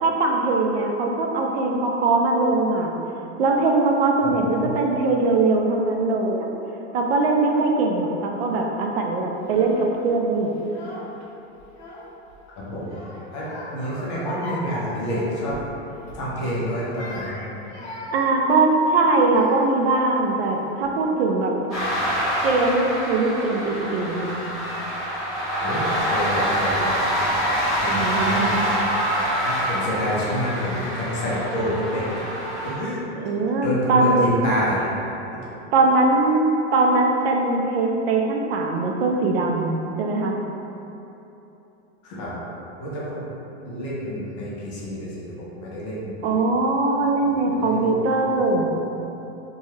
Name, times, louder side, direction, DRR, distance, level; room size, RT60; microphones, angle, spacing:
voice 1, 0.0-2.9 3.4-6.5 6.9-10.5 18.1-21.5 22.4-24.4 27.9-28.9 33.2-34.3 35.7-40.4 46.2-48.7, right 3 dB, 65° right, 1 dB, 0.4 m, -21 dB
voice 2, 4.2-4.7 12.6-12.9 13.3-15.6 16.1-17.4 25.6-26.9 27.8-28.6 29.4-32.1 32.6-33.0 33.6-35.4 42.0-42.3 42.8-43.3 43.6-46.2 47.2-48.5, equal, 25° left, -7 dB, 0.4 m, -28 dB
Child speech kid speaking / Crying sobbing, 9.4-10.0 10.6-11.3 11.6-12.4 12.9-15.7 16.0-16.3 16.8-19.9 20.5-20.9 21.7-21.8 22.0-22.8, left 1 dB, 70° left, 0.7 m, -38 dB
sound 1, 21.7-32.7, equal, ahead, 0.8 m, -25 dB
3.1 x 2.2 x 2.8 m, 3.0 s
supercardioid pair, 170°, 35 cm